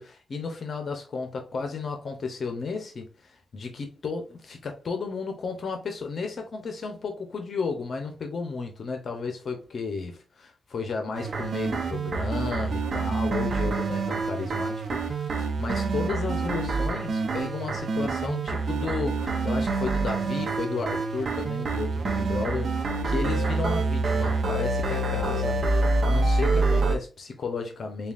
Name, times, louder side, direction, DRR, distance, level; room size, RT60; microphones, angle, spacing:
voice 1, 0.0-22.7 23.0-28.1, left 4 dB, 60° left, 0.8 m, -33 dB
sound 1, 11.1-27.0, right 3 dB, 65° right, 0.7 m, -26 dB
6.7 x 2.4 x 2.5 m
cardioid pair, 95°, 0 cm